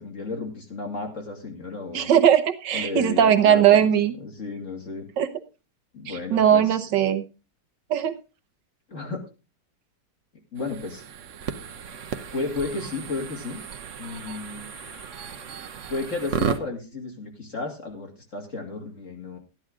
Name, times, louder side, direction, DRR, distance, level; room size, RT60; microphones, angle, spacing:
voice 1, 0.0-2.1 2.7-3.9 4.2-5.1 5.9-6.8 8.9-9.2 10.5-11.0 12.3-13.6 14.0-14.7 15.9-19.4, left 3 dB, 45° left, 1 dB, 2.7 m, -33 dB
voice 2, 1.9-4.1 5.2-5.3 6.1-7.2 7.9-8.1, right 9 dB, 75° right, 11 dB, 1.6 m, -19 dB
sound 1, 10.6-16.6, right 7 dB, 50° right, 1.1 m, -34 dB
13.0 x 10.5 x 3.7 m, 0.30 s
omnidirectional pair, 1.9 m